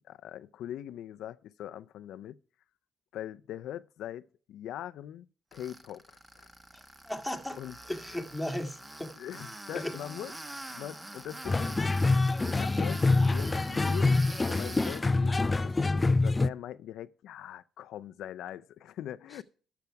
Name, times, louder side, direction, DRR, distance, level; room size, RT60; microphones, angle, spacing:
voice 1, 0.0-2.4 3.1-6.5 7.6-7.8 9.2-10.3 10.7-11.8 12.5-19.4, left 11 dB, 80° left, 0.5 m, -42 dB
Tools, 5.5-15.0, right 1 dB, 15° right, 1.2 m, -45 dB
voice 2, 6.7-7.6 7.8-9.1 9.7-9.9, left 1 dB, ahead, 1.8 m, -36 dB
sound 1, 11.5-16.5, left 3 dB, 20° left, 0.4 m, -26 dB
12.0 x 6.9 x 4.6 m
cardioid pair, 90°, 0 cm